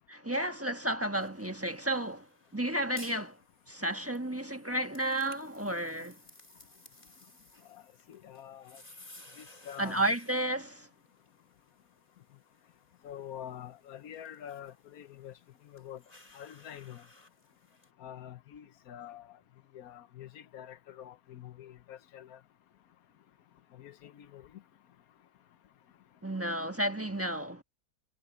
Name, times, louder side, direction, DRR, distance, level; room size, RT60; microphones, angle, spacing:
voice 1, 0.1-2.3 2.5-3.4 3.7-6.2 9.8-10.9 26.2-27.6, right 1 dB, 10° right, 1.1 m, -32 dB
sound 1, 1.2-17.9, left 2 dB, 25° left, 2.9 m, -58 dB
voice 2, 8.1-8.8 9.4-10.0 13.0-15.3 15.7-16.0 16.3-17.0 18.0-19.3 19.7-22.4 23.8-24.4, left 10 dB, 70° left, 1.3 m, -46 dB
omnidirectional pair, 1.7 m